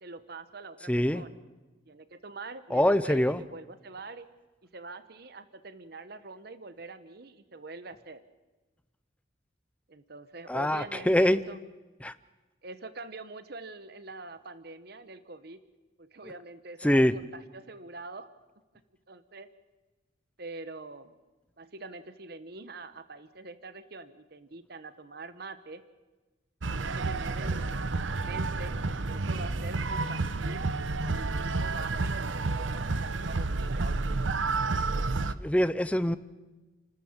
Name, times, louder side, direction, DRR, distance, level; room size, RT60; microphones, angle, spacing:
voice 1, 0.0-1.4 1.9-4.3 4.7-8.2 9.9-11.6 12.6-15.6 16.0-18.3 19.1-19.5 20.4-21.2 21.6-25.8 26.7-28.8 29.1-30.7 31.1-34.3, right 3 dB, 55° right, 13 dB, 1.0 m, -44 dB
voice 2, 0.9-1.2 2.7-3.4 10.5-11.4 12.0-12.1 16.8-17.1 35.4-36.2, left 1 dB, 5° left, 14 dB, 0.6 m, -24 dB
sound 1, 26.6-35.3, right 3 dB, 85° right, 0.8 m, -30 dB
29.5 x 13.0 x 7.2 m, 1.2 s
head